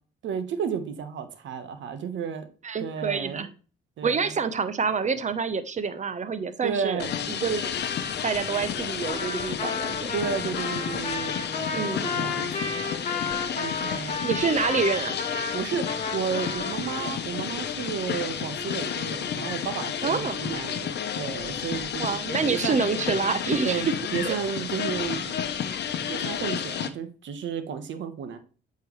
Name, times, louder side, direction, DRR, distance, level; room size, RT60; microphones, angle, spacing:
voice 1, 0.2-2.5 2.8-3.5 4.0-4.3 6.6-7.1 10.1-14.2 15.5-15.8 16.1-20.9 21.2-22.1 22.5-22.8 23.6-25.4 26.1-28.4, right 7 dB, 70° right, 9 dB, 1.2 m, -32 dB
voice 2, 2.6-3.5 4.0-7.7 8.2-10.1 11.7-12.0 14.2-15.2 20.0-20.4 22.0-23.9 24.2-24.4, right 5 dB, 35° right, 12 dB, 0.9 m, -27 dB
sound 1, 7.0-26.9, left 8 dB, 60° left, 0.8 m, -31 dB
Trumpet, 9.1-17.1, left 5 dB, 40° left, 1.6 m, -32 dB
8.2 x 4.7 x 3.1 m, 0.37 s
cardioid pair, 90°, 20 cm